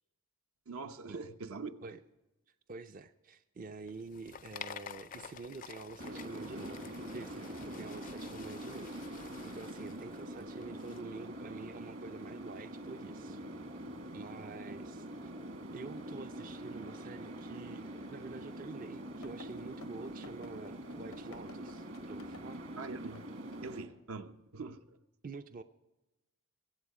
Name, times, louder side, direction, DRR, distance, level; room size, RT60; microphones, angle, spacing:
voice 1, 0.7-1.7 22.8-23.2 23.6-25.0, right 4 dB, 75° right, 0.8 m, -43 dB
voice 2, 2.5-6.8 7.1-13.4 14.1-15.3 15.7-22.6 25.2-25.6, right 4 dB, 40° right, 0.4 m, -47 dB
sound 1, 3.8-11.0, left 7 dB, 40° left, 0.4 m, -50 dB
sound 2, 6.0-23.9, right 1 dB, 60° right, 1.7 m, -44 dB
sound 3, 19.2-22.7 23.2-23.3 23.5-23.7, left 3 dB, 80° left, 0.7 m, -55 dB
24.0 x 8.0 x 4.8 m
head